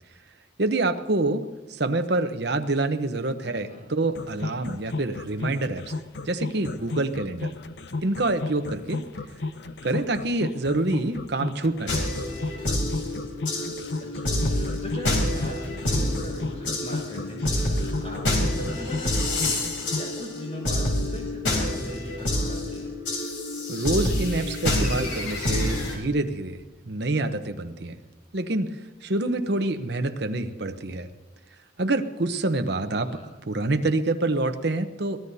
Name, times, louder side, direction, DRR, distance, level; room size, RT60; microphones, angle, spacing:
voice 1, 0.6-1.4 1.7-5.9 6.2-7.5 8.0-9.0 9.8-12.1 23.7-28.0 28.3-28.7 29.0-31.1 31.8-33.1 33.5-35.2, right 2 dB, 55° right, 8 dB, 0.9 m, -26 dB
voice 2, 3.4-3.9 14.0-22.9 32.9-33.3, equal, 35° left, -1 dB, 6.1 m, -40 dB
sound 1, 4.1-20.1, left 3 dB, 55° left, 0.7 m, -33 dB
sound 2, 11.9-26.0, left 1 dB, 85° left, 4.2 m, -27 dB
23.0 x 16.5 x 2.7 m, 1.2 s
head